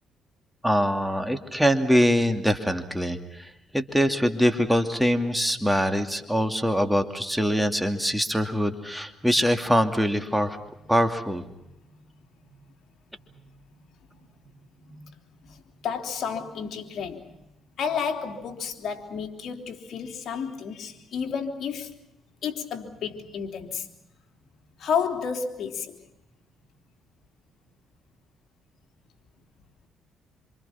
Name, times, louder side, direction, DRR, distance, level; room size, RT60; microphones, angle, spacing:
voice 1, 0.6-10.6 10.9-11.4, equal, 5° right, 2.6 m, -23 dB
voice 2, 14.8-15.1 15.4-17.5 17.8-22.0 22.4-23.9 24.8-26.0, left 6 dB, 65° left, 3.4 m, -31 dB
27.0 x 27.0 x 5.8 m
cardioid pair, 90°, 0 cm